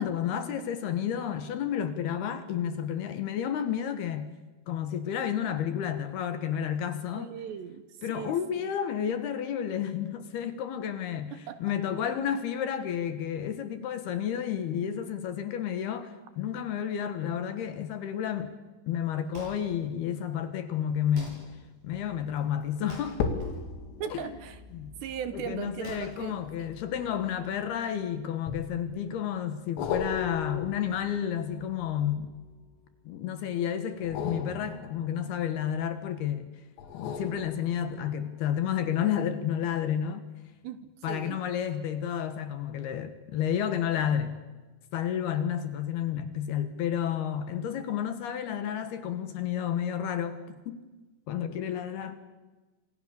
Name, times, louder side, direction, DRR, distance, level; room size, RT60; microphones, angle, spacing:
voice 1, 0.0-4.3 4.7-7.3 8.0-18.5 18.9-21.4 21.8-23.2 24.1-24.3 24.7-24.9 25.3-32.3 33.0-36.5 36.9-40.3 41.0-44.4 44.9-50.8 51.3-52.1, left 9 dB, 65° left, 2.9 m, -31 dB
voice 2, 7.1-7.8 8.1-8.7 11.3-11.6 24.0-24.6 25.0-26.7 40.6-40.8 41.1-41.4, right 8 dB, 75° right, 2.9 m, -38 dB
Wood, 18.9-27.3, right 1 dB, 40° right, 9.4 m, -50 dB
sound 1, 23.1-27.8 28.5-29.1 29.8-32.8 34.0-36.0 36.8-38.2 38.7-38.8, left 6 dB, 85° left, 4.8 m, -38 dB
28.0 x 26.5 x 6.9 m
omnidirectional pair, 5.8 m